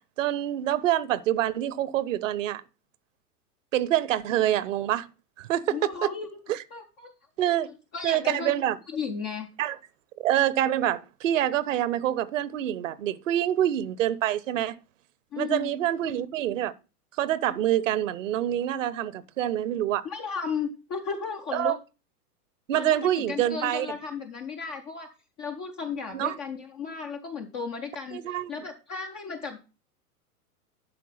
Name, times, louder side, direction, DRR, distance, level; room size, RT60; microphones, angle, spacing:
voice 1, 0.2-2.6 3.7-5.1 5.4-6.1 6.5-6.6 7.4-7.7 8.0-8.8 9.6-9.8 10.2-14.8 15.4-16.7 17.2-20.0 21.5-21.8 22.7-23.9 26.1-26.4 28.1-28.5, right 12 dB, 55° right, 0.9 m, -26 dB
voice 2, 5.7-6.3 6.7-7.1 7.7-8.5 8.9-9.5 15.3-15.7 20.0-21.8 22.7-25.1 25.4-29.6, left 5 dB, 15° left, 0.3 m, -34 dB
11.5 x 4.4 x 5.5 m
figure-of-eight pair, 100°, 46 cm